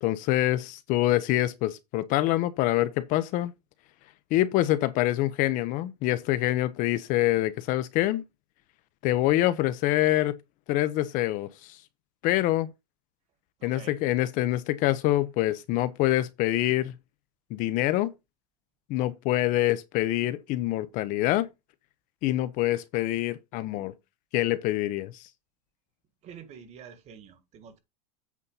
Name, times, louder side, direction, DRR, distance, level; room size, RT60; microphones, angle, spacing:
voice 1, 0.0-3.5 4.3-8.2 9.0-10.4 10.7-11.8 12.2-12.7 13.6-16.9 17.5-18.1 18.9-21.5 22.2-23.9 24.3-25.2, left 15 dB, 40° left, 0.7 m, -25 dB
voice 2, 13.6-14.0 26.2-27.8, right 7 dB, 30° right, 1.7 m, -47 dB
8.3 x 4.1 x 5.4 m
supercardioid pair, 140°, 21 cm